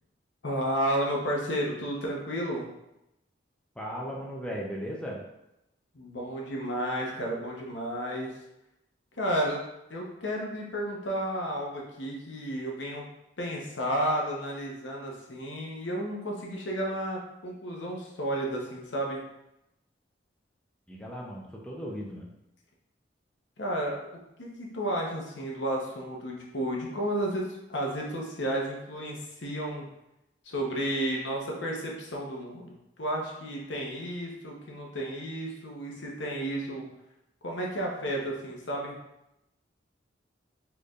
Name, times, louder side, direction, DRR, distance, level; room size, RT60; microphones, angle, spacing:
voice 1, 0.4-2.7 5.9-8.3 9.2-9.6 9.9-13.1 13.4-19.2 23.6-24.1 24.4-29.9 30.4-36.9 37.4-39.0, right 1 dB, 85° left, -1 dB, 0.9 m, -32 dB
voice 2, 3.8-5.2 20.9-22.3, equal, 5° left, -3 dB, 0.5 m, -37 dB
4.4 x 3.3 x 2.4 m, 0.88 s
head